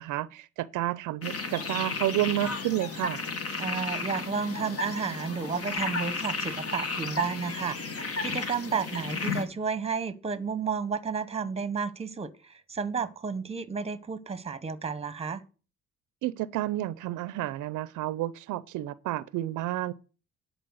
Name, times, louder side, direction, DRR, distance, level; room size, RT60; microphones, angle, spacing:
voice 1, 0.0-3.2 16.2-19.9, right 15 dB, 85° right, 0.5 m, -30 dB
sound 1, 1.2-9.4, left 4 dB, 50° left, 1.8 m, -33 dB
voice 2, 3.6-15.4, right 6 dB, 20° right, 1.0 m, -32 dB
10.0 x 4.5 x 7.7 m
cardioid pair, 90°, 30 cm